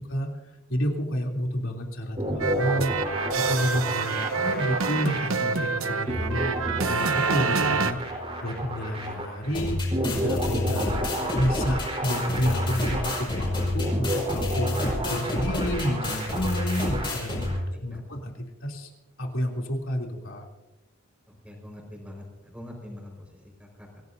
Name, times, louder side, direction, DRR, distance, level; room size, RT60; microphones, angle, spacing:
voice 1, 0.7-2.9 3.3-9.8 10.2-11.0 11.3-17.5 17.8-18.9 19.2-20.5, equal, 65° left, 0 dB, 3.2 m, -30 dB
sound 1, 2.2-17.6, right 1 dB, 25° right, 4.2 m, -31 dB
sound 2, 2.4-7.9, right 4 dB, 75° right, 0.9 m, -27 dB
sound 3, 9.5-17.5, left 2 dB, 25° left, 5.5 m, -29 dB
voice 2, 21.3-24.0, left 1 dB, 5° right, 0 dB, 4.9 m, -44 dB
26.5 x 17.0 x 2.7 m, 1.0 s
head